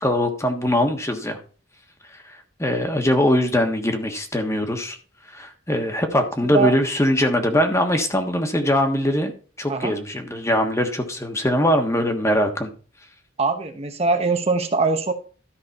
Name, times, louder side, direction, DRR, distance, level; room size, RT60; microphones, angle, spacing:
voice 1, 0.0-1.4 2.1-2.2 2.6-5.0 5.3-9.3 9.6-12.7, left 1 dB, 15° left, 5 dB, 1.3 m, -21 dB
voice 2, 13.4-15.1, right 4 dB, 35° right, 6 dB, 0.9 m, -22 dB
13.0 x 5.2 x 4.1 m, 0.38 s
head